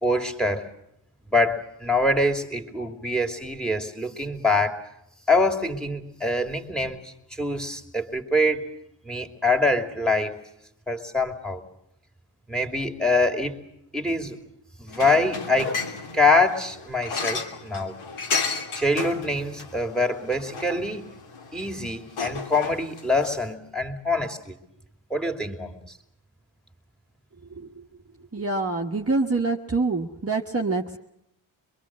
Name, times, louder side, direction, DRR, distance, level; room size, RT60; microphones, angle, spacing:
voice 1, 0.0-0.7 1.3-4.8 5.3-8.7 9.0-10.4 10.9-11.6 12.5-13.6 13.9-14.4 14.8-15.8 16.1-18.0 18.7-21.1 21.5-24.6 25.1-25.8, left 2 dB, ahead, 2.8 m, -24 dB
sound 1, 14.9-23.4, left 4 dB, 75° left, 3.0 m, -33 dB
voice 2, 27.5-27.8 28.3-31.0, right 3 dB, 30° right, 1.5 m, -26 dB
24.5 x 22.5 x 7.6 m
cardioid pair, 70°, 49 cm